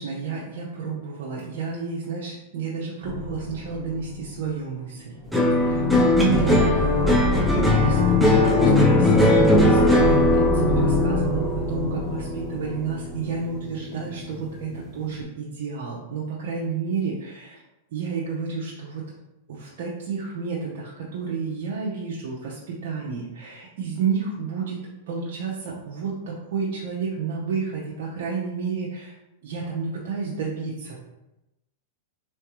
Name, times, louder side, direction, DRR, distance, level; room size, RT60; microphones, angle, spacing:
voice 1, 0.0-17.6 17.9-19.1 19.5-24.8 25.1-29.1 29.4-31.0, right 5 dB, 65° right, -4 dB, 0.8 m, -31 dB
sound 1, 3.0-4.6 5.2-13.2, left 2 dB, 15° left, 1.0 m, -25 dB
sound 2, 5.3-13.8 14.1-14.7, left 1 dB, 5° right, 0.7 m, -21 dB
3.8 x 3.3 x 3.1 m, 0.94 s
hypercardioid pair, 120°, 0 cm